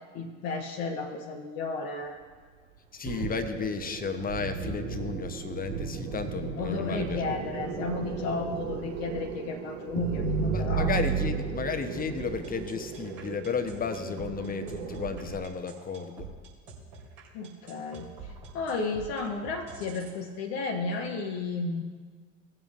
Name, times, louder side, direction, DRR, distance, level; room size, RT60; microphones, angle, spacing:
voice 1, 0.1-2.1 6.6-10.9 17.3-21.8, left 3 dB, 55° left, 2 dB, 1.2 m, -33 dB
voice 2, 2.9-7.2 10.5-16.3, left 5 dB, 25° left, 8 dB, 1.0 m, -33 dB
sound 1, 3.0-15.4, right 5 dB, 70° right, 1.5 m, -34 dB
sound 2, 12.2-20.2, right 5 dB, 50° right, 2.9 m, -46 dB
18.0 x 7.5 x 2.6 m, 1.5 s
figure-of-eight pair, 65°, 37 cm